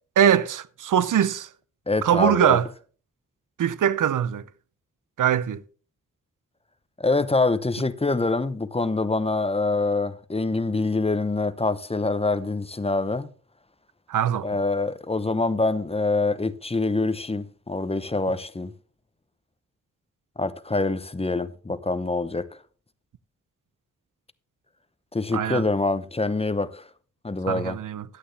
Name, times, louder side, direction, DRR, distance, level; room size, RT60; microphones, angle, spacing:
voice 1, 0.2-1.5 2.0-2.7 3.6-4.4 5.2-5.6 14.1-14.5 25.3-25.6 27.5-28.0, right 9 dB, 85° right, 0.6 m, -22 dB
voice 2, 1.9-2.6 7.0-13.3 14.4-18.7 20.4-22.5 25.1-26.9 27.2-27.8, left 3 dB, 20° left, 0.8 m, -25 dB
11.5 x 8.6 x 3.4 m
cardioid pair, 55°, 31 cm